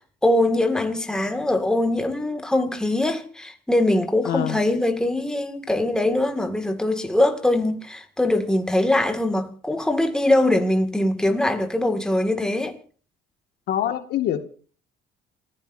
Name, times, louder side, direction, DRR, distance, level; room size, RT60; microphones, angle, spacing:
voice 1, 0.2-12.7, left 1 dB, 5° left, 2.1 m, -22 dB
voice 2, 4.2-4.6 13.7-14.6, left 11 dB, 70° left, 2.0 m, -25 dB
28.5 x 15.5 x 2.7 m
cardioid pair, 110°, 17 cm